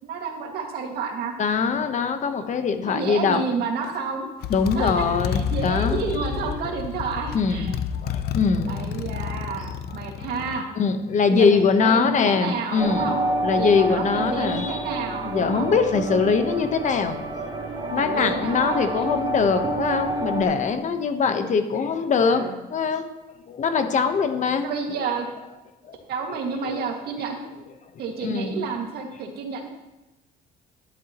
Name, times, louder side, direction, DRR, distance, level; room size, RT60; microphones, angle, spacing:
voice 1, 0.0-1.3 2.9-4.3 4.8-7.8 8.7-10.7 11.3-13.2 13.5-15.7 18.0-19.2 22.2-22.5 24.6-25.3 26.1-27.4 28.0-29.7, right 5 dB, 70° right, 1 dB, 2.1 m, -30 dB
voice 2, 1.4-3.4 4.5-6.7 7.3-8.8 9.7-10.3 10.8-14.9 15.2-17.6 17.9-24.7 25.8-25.9 26.6-26.8 28.2-28.6, left 5 dB, 45° left, 8 dB, 1.0 m, -23 dB
Motorcycle, 3.8-4.0 4.4-10.6, left 8 dB, 70° left, 0.7 m, -30 dB
sound 1, 12.8-20.4, right 2 dB, 25° right, 2.2 m, -28 dB
12.0 x 11.0 x 3.0 m, 1.0 s
cardioid pair, 110°, 17 cm